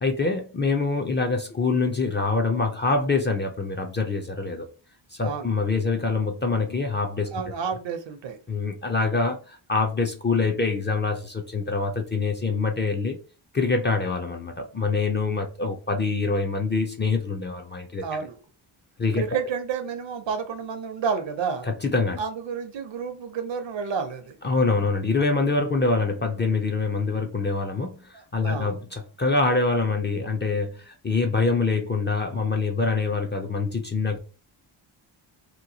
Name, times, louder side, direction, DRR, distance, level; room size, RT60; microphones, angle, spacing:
voice 1, 0.0-4.7 5.1-7.3 8.5-13.2 13.5-18.0 19.0-19.2 21.6-22.2 24.4-34.2, left 3 dB, 25° left, 0.4 m, -25 dB
voice 2, 5.2-5.5 7.3-8.4 18.0-18.4 19.1-21.7 22.2-24.4 24.7-24.9 28.1-28.8, right 6 dB, 60° right, 0.7 m, -30 dB
2.9 x 2.2 x 2.7 m
cardioid pair, 75°, 50 cm